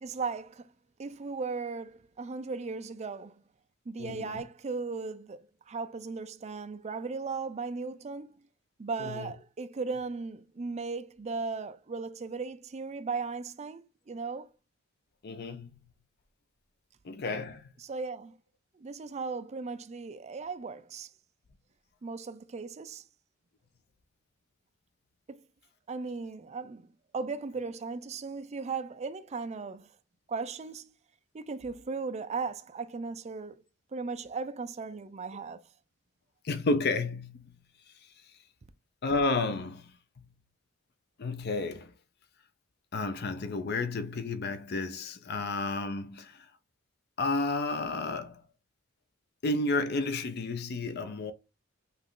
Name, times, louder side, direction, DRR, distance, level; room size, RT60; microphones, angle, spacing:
voice 1, 0.0-0.7 1.0-3.4 3.9-8.3 8.8-14.5 17.8-18.4 18.7-21.1 22.0-23.0 25.3-25.5 25.9-26.9 27.1-29.9 30.3-30.9 31.3-33.6 33.9-35.6, right 4 dB, 35° right, 0.4 m, -37 dB
voice 2, 4.0-4.4 9.0-9.3 15.2-15.8 17.0-17.6 36.4-37.6 39.0-39.9 40.2-40.3 41.2-41.9 42.9-46.5 47.2-48.4 49.4-51.3, left 3 dB, 55° left, 0.5 m, -31 dB
5.5 x 2.4 x 3.8 m
head